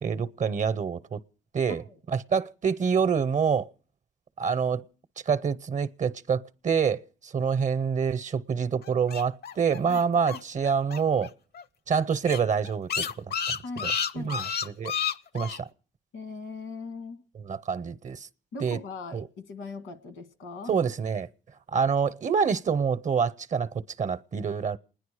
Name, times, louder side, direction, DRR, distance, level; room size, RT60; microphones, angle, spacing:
voice 1, 0.0-1.2 1.5-3.7 4.4-4.8 5.3-11.3 11.9-13.6 13.8-15.0 15.3-15.7 17.3-18.3 18.6-18.8 19.1-19.3 20.7-21.3 21.7-24.8, right 6 dB, 40° right, 0.7 m, -27 dB
sound 1, 8.8-11.3 11.5-11.6 11.9-12.0 12.2-15.6, left 7 dB, 55° left, 0.7 m, -31 dB
voice 2, 13.6-14.4 16.1-17.2 18.5-20.7, left 3 dB, 85° left, 1.7 m, -40 dB
28.0 x 10.5 x 4.8 m
cardioid pair, 90°, 20 cm